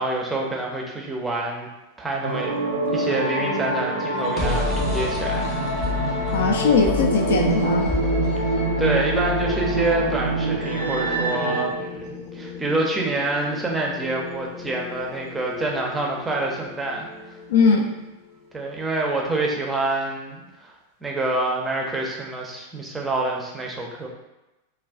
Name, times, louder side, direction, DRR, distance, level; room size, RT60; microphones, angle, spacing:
voice 1, 0.0-1.7 2.0-2.6 2.9-5.5 8.8-17.1 18.5-20.7 21.0-24.1, right 2 dB, 10° right, -1 dB, 0.5 m, -27 dB
sound 1, 2.2-11.6, right 2 dB, 75° right, 0.4 m, -25 dB
sound 2, 4.1-17.9, left 4 dB, 25° left, 0.7 m, -32 dB
voice 2, 6.3-7.9 17.5-17.8, left 4 dB, 60° left, 1 dB, 0.3 m, -19 dB
2.3 x 2.2 x 3.4 m, 1.0 s
figure-of-eight pair, 90°, 0 cm